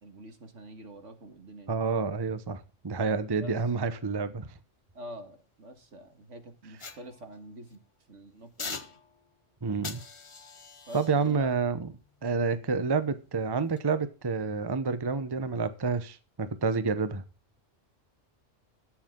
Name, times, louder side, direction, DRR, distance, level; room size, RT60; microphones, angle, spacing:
voice 1, 0.0-1.8 3.3-3.5 4.9-7.8 8.1-8.9 10.9-11.5, right 1 dB, 75° right, 7 dB, 2.1 m, -46 dB
voice 2, 1.7-4.5 9.6-10.0 10.9-11.9 12.2-17.2, right 4 dB, 25° right, 12 dB, 0.8 m, -29 dB
sound 1, 6.8-7.8 8.6-9.4 9.8-13.1 13.6-13.8, left 4 dB, 30° left, 0.7 m, -44 dB
20.0 x 7.3 x 3.7 m, 0.32 s
omnidirectional pair, 1.3 m